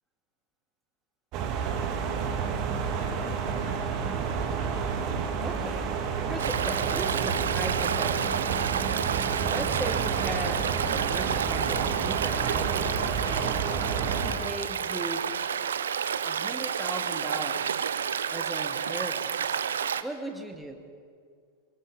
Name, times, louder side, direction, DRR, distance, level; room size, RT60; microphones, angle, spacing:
sound 1, 1.3-14.3, right 6 dB, 40° right, 2.3 m, -30 dB
voice 1, 4.0-4.5 5.4-5.9 6.3-8.8 9.5-12.8 13.3-13.9 14.2-15.3 16.2-17.8 18.3-19.6 20.0-20.8, right 1 dB, 5° right, 4 dB, 2.1 m, -38 dB
Stream, 6.4-20.0, right 7 dB, 65° right, 0.7 m, -30 dB
25.0 x 23.5 x 4.9 m, 2.1 s
figure-of-eight pair, 90°, 0 cm